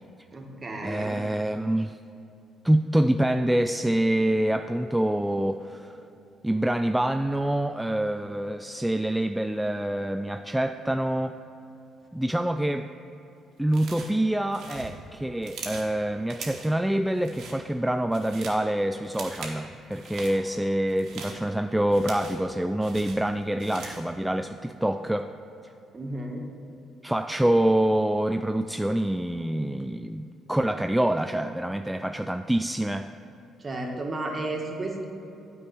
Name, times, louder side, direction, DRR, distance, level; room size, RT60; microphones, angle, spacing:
voice 1, 0.3-1.1 25.9-26.4 33.6-35.1, right 2 dB, 35° right, 1 dB, 1.5 m, -33 dB
voice 2, 0.8-2.0 2.6-6.0 6.4-11.4 12.1-12.9 13.6-25.3 27.0-33.1, right 1 dB, 5° right, 7 dB, 0.3 m, -26 dB
sound 1, 13.7-14.2 14.5-15.9 16.3-16.8 17.1-17.6 18.0-18.6 19.0-19.6 19.9-20.4 20.9-22.5 22.8-24.1, right 4 dB, 65° right, 1.3 m, -41 dB
9.0 x 4.7 x 6.9 m, 2.8 s
hypercardioid pair, 55°, 0 cm